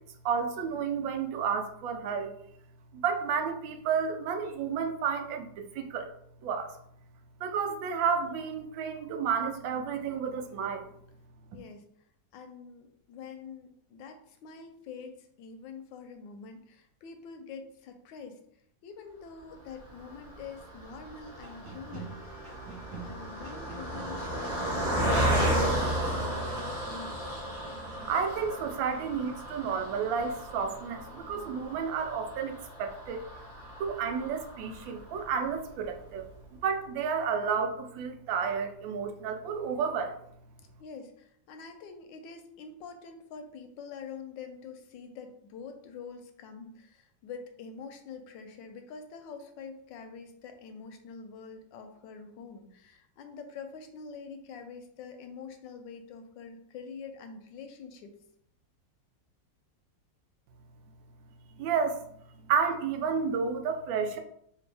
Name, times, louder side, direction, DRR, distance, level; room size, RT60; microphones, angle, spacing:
voice 1, 0.2-2.3 2.9-6.1 6.4-6.7 7.4-10.9 27.7-33.2 33.8-36.3 36.6-40.2 61.6-62.0 62.4-64.2, right 6 dB, 85° right, 6 dB, 1.3 m, -31 dB
voice 2, 11.5-11.8 12.3-18.4 18.8-22.5 23.0-27.3 40.8-58.1, left 5 dB, 80° left, 6 dB, 1.3 m, -46 dB
Car passing by, 19.8-35.3 35.8-35.9 36.2-36.3, right 1 dB, 45° left, 0.4 m, -34 dB
sound 1, 21.3-26.7, right 4 dB, 50° right, 1.7 m, -46 dB
4.3 x 2.6 x 3.3 m, 0.71 s
omnidirectional pair, 2.0 m